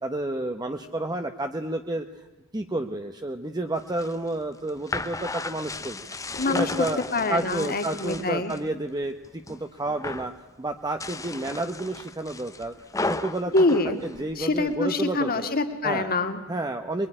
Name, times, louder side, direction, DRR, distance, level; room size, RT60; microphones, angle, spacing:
voice 1, 0.0-2.1 2.5-6.1 6.5-7.0 7.3-10.3 10.6-12.7 13.0-13.5 14.0-15.5 15.8-16.1 16.5-17.1, right 2 dB, 20° right, 5 dB, 1.0 m, -30 dB
sound 1, 3.8-8.7 9.0-9.6 9.9-10.4 10.9-14.8, left 2 dB, 15° left, 0.9 m, -35 dB
voice 2, 6.4-8.5 13.5-14.0 14.4-16.4, left 2 dB, 45° left, 7 dB, 2.1 m, -25 dB
23.5 x 21.5 x 10.0 m, 1.1 s
head